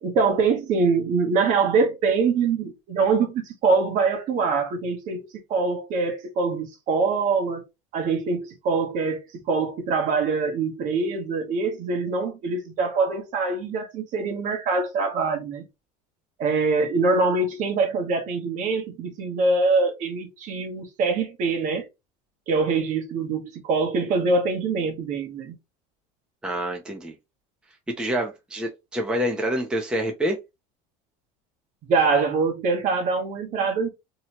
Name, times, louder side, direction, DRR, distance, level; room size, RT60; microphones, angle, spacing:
voice 1, 0.0-7.6 7.9-15.6 16.4-21.8 22.5-25.5 31.8-33.9, right 4 dB, 50° right, 1.0 m, -24 dB
voice 2, 26.4-27.1 28.0-30.4, equal, 5° right, 0.6 m, -27 dB
2.9 x 2.3 x 2.9 m
supercardioid pair, 130°, 17 cm